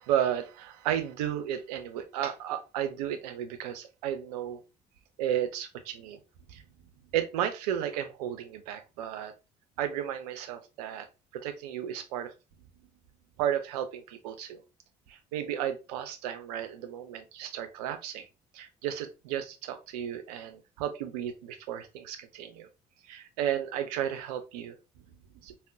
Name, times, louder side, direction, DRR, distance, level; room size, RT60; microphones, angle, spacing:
voice 1, 0.0-4.6 5.2-6.2 6.5-6.6 7.1-9.3 9.8-11.1 11.3-12.3 13.4-14.6 15.1-18.3 18.5-22.7 23.1-24.8 25.4-25.5, right 10 dB, 75° right, 9 dB, 0.5 m, -33 dB
3.5 x 2.1 x 2.4 m, 0.29 s
hypercardioid pair, 50°, 20 cm